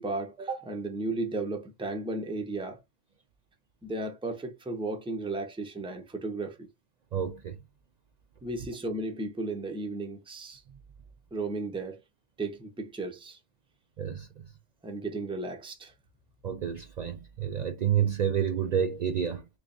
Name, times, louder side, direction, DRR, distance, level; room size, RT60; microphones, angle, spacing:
voice 1, 0.0-2.8 3.8-6.7 8.4-10.6 11.3-12.0 12.4-13.4 14.8-15.9, right 2 dB, 10° right, 0.4 m, -34 dB
voice 2, 7.1-7.6 14.0-14.3 16.4-19.5, right 8 dB, 85° right, 0.3 m, -29 dB
3.3 x 2.3 x 3.8 m
omnidirectional pair, 1.3 m